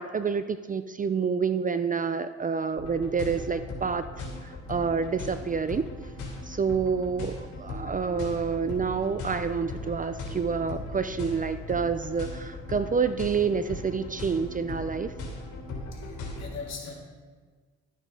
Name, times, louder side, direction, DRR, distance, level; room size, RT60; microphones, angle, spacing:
voice 1, 0.0-5.9 6.4-15.1, right 5 dB, 30° right, 11 dB, 0.4 m, -28 dB
sound 1, 2.8-16.4, left 2 dB, 85° left, 3.0 m, -38 dB
voice 2, 15.9-17.0, left 5 dB, 60° left, -2 dB, 2.9 m, -40 dB
12.5 x 9.0 x 3.8 m, 1.5 s
cardioid pair, 90°, 30 cm